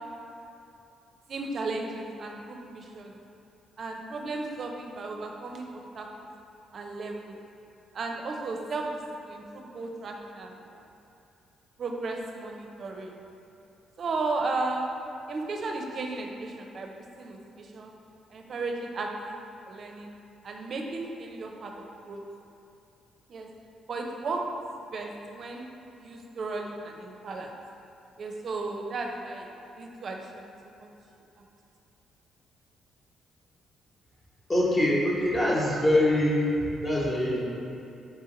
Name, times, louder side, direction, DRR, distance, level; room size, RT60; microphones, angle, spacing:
voice 1, 1.3-3.2 3.8-6.3 6.7-7.4 7.9-10.8 11.8-13.1 14.0-14.9 15.3-16.9 17.2-17.9 18.3-20.1 20.4-22.2 23.3-23.5 23.9-24.4 24.9-25.6 26.0-27.5 28.2-29.5 29.8-30.9, right 3 dB, 50° right, 2 dB, 0.5 m, -35 dB
voice 2, 34.5-37.4, left 1 dB, 25° left, -5 dB, 1.1 m, -24 dB
4.8 x 2.8 x 3.8 m, 2.8 s
cardioid pair, 90°, 0 cm